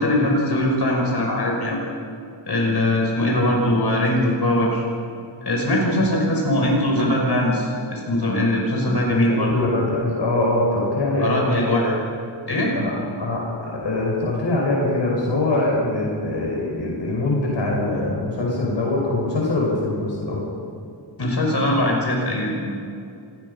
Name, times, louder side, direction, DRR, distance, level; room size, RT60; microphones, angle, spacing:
voice 1, 0.0-1.9 2.5-4.8 5.4-9.5 11.2-12.0 12.5-12.7 21.2-22.5, left 1 dB, 65° left, -1 dB, 5.9 m, -21 dB
voice 2, 9.3-11.8 12.8-20.4, left 2 dB, 85° left, -2 dB, 5.5 m, -23 dB
27.0 x 19.5 x 5.5 m, 2.5 s
wide cardioid pair, 95°, 43 cm